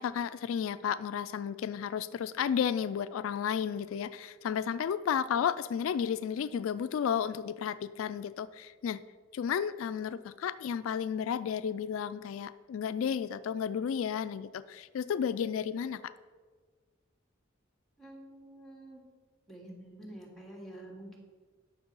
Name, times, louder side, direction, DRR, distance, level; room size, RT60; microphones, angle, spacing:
voice 1, 0.0-9.0 9.3-16.1, left 8 dB, 75° left, 14 dB, 0.3 m, -32 dB
voice 2, 18.0-19.0 19.5-21.2, right 1 dB, ahead, -2 dB, 2.2 m, -48 dB
9.5 x 6.6 x 5.4 m, 1.5 s
head